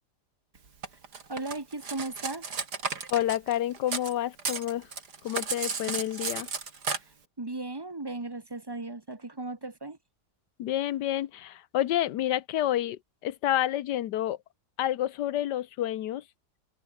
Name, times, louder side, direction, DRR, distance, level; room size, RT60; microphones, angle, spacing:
Cutlery silverware, 0.8-4.1 4.4-7.0, right 5 dB, 70° right, 3.1 m, -33 dB
voice 1, 1.3-2.5 7.4-10.0, right 2 dB, 15° right, 1.1 m, -36 dB
voice 2, 3.1-4.9 5.2-6.5 10.6-14.4 14.8-16.2, left 12 dB, 80° left, 1.4 m, -29 dB
omnidirectional pair, 1.8 m